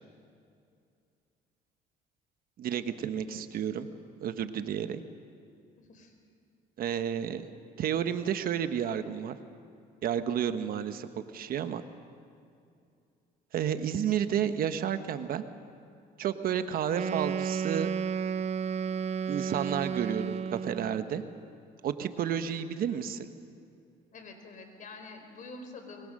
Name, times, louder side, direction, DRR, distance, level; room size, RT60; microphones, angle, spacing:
voice 1, 2.6-3.9 4.2-5.0 6.8-7.4 7.8-9.4 10.0-11.1 11.3-11.8 13.5-15.4 16.2-17.9 19.3-21.2 21.8-23.2, right 9 dB, 60° right, 10 dB, 1.1 m, -31 dB
voice 2, 5.8-6.1 22.8-23.1 24.1-26.1, left 3 dB, 50° left, 5 dB, 4.1 m, -47 dB
Wind instrument woodwind instrument, 16.9-21.0, right 7 dB, 40° right, 0.8 m, -32 dB
24.5 x 22.5 x 6.5 m, 2.4 s
cardioid pair, 110°, 17 cm